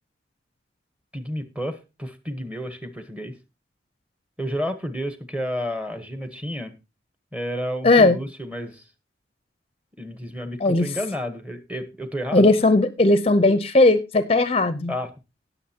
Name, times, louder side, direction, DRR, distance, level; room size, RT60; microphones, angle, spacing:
voice 1, 1.1-3.4 4.4-6.7 7.3-8.8 10.0-12.5 14.9-15.1, equal, 5° right, 1.1 m, -31 dB
voice 2, 7.8-8.2 10.6-10.9 12.3-14.9, left 2 dB, 30° left, 0.6 m, -17 dB
19.0 x 7.1 x 2.8 m
head